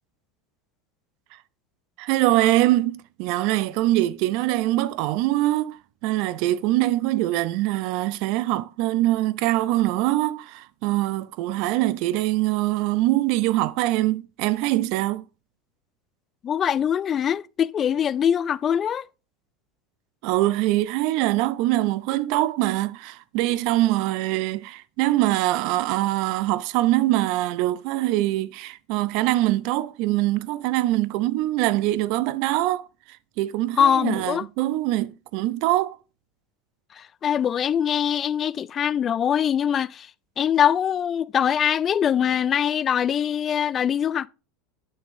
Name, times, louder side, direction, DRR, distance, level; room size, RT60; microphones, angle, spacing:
voice 1, 2.0-15.2 20.2-32.9 33.4-36.0, right 16 dB, 60° right, 0.5 m, -23 dB
voice 2, 16.4-19.1 33.8-34.4 36.9-40.1 40.4-44.3, left 9 dB, 35° left, 0.3 m, -23 dB
8.3 x 6.3 x 2.6 m
supercardioid pair, 110°, 0 cm